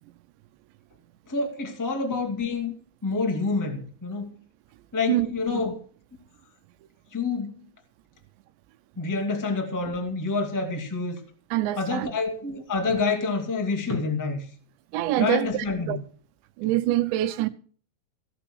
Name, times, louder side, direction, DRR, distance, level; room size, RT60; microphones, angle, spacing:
voice 1, 1.3-2.7 3.0-4.3 4.9-5.8 7.1-7.6 9.0-11.2 11.8-14.5 15.2-15.9, left 4 dB, 10° left, 0.9 m, -27 dB
voice 2, 11.5-12.1 14.9-16.0 16.6-17.5, right 15 dB, 90° right, 3.2 m, -25 dB
17.0 x 6.1 x 8.1 m
omnidirectional pair, 5.0 m